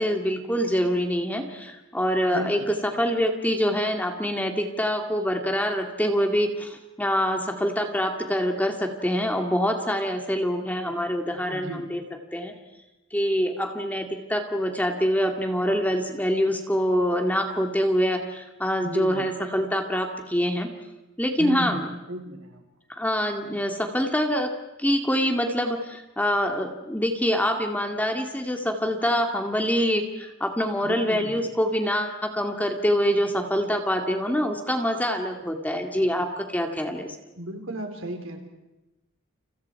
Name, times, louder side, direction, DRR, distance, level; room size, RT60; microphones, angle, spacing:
voice 1, 0.0-12.0 12.3-12.5 13.1-20.7 21.2-21.8 22.9-24.5 24.8-37.2, equal, 10° left, 3 dB, 2.2 m, -25 dB
voice 2, 2.3-2.7 11.5-11.9 18.8-19.3 21.4-22.6 30.8-31.5 37.4-38.4, right 1 dB, 65° right, 4 dB, 4.1 m, -34 dB
30.0 x 29.0 x 4.7 m, 1.0 s
head